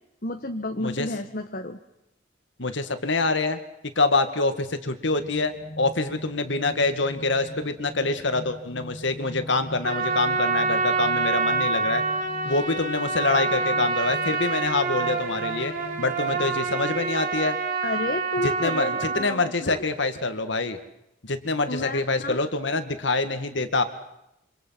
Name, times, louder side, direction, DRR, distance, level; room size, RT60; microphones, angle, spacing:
voice 1, 0.2-1.8 13.8-13.9 17.8-19.8 21.6-22.4, left 2 dB, 50° left, 5 dB, 1.4 m, -31 dB
voice 2, 2.6-3.6 4.0-12.0 12.4-17.6 18.4-20.8 21.2-23.8, left 3 dB, 70° left, 9 dB, 2.2 m, -26 dB
sound 1, 5.2-16.8, equal, 25° left, 2.0 m, -42 dB
Trumpet, 9.8-19.3, right 4 dB, 45° right, 3.5 m, -26 dB
27.0 x 26.0 x 6.0 m, 0.84 s
head